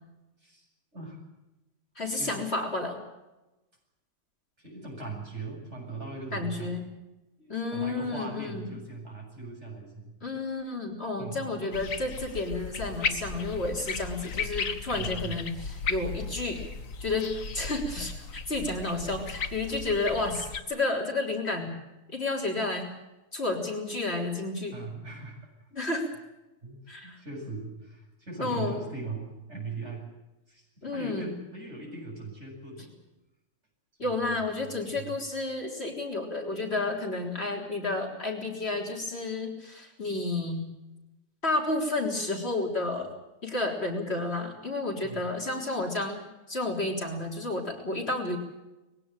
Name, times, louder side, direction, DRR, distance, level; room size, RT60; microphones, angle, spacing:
voice 1, 2.0-3.0 6.3-6.9 7.5-8.7 10.2-16.6 17.0-21.7 22.1-22.9 23.3-24.7 25.7-26.1 26.9-27.2 28.4-28.9 30.8-31.3 34.0-40.6 41.4-43.1 43.4-46.2 46.5-48.4, left 2 dB, 45° left, 1 dB, 4.1 m, -31 dB
voice 2, 4.6-6.8 7.4-10.1 11.1-11.5 14.8-15.4 24.7-25.4 26.6-30.1 30.5-33.0 34.0-35.2 45.0-45.3, right 3 dB, 50° right, -1 dB, 8.2 m, -40 dB
sound 1, 11.7-20.6, left 5 dB, 65° left, 1.7 m, -35 dB
21.5 x 17.0 x 9.2 m, 1.0 s
omnidirectional pair, 1.6 m